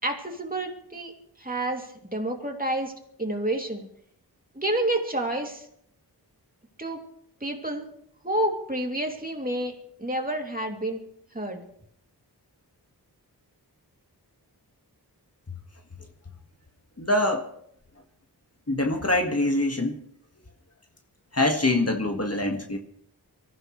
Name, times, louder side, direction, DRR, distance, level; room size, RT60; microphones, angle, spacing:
voice 1, 0.0-1.1 1.4-2.9 3.2-3.8 4.5-5.7 6.8-7.0 7.4-7.8 8.2-11.0 11.3-11.6, right 1 dB, 20° right, 1 dB, 2.8 m, -29 dB
voice 2, 17.0-17.5 18.7-20.0 21.3-22.8, left 2 dB, 35° left, 3 dB, 1.8 m, -24 dB
24.0 x 14.5 x 3.2 m, 0.68 s
wide cardioid pair, 55°, 40 cm